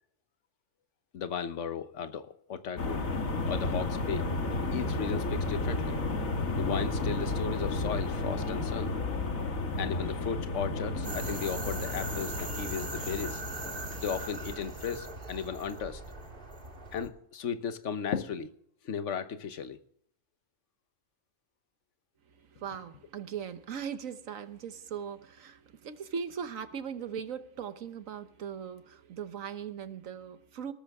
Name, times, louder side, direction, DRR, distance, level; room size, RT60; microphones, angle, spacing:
voice 1, 1.1-3.0 3.5-4.3 4.7-6.0 6.5-8.9 9.8-13.4 13.9-16.0 16.9-18.5 18.8-19.8, left 7 dB, 65° left, 1.3 m, -35 dB
sound 1, 2.8-15.1, left 2 dB, 85° left, 2.2 m, -33 dB
sound 2, 11.0-17.1, right 2 dB, 40° right, 2.2 m, -40 dB
voice 2, 22.3-30.7, right 7 dB, 80° right, 1.4 m, -39 dB
18.5 x 13.5 x 3.6 m
omnidirectional pair, 1.4 m